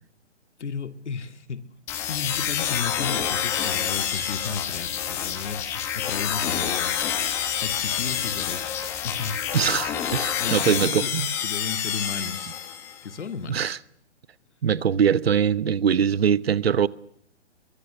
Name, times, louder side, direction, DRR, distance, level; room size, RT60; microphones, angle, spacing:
voice 1, 0.6-1.7 2.1-7.0 7.6-9.4 10.4-12.5 13.0-13.8, left 5 dB, 75° left, 2.4 m, -34 dB
sound 1, 1.9-13.0, left 9 dB, 5° left, 1.0 m, -28 dB
voice 2, 9.5-11.4 13.5-13.8 14.6-16.9, right 8 dB, 60° right, 1.0 m, -22 dB
23.5 x 23.0 x 6.8 m
hypercardioid pair, 170°, 35 cm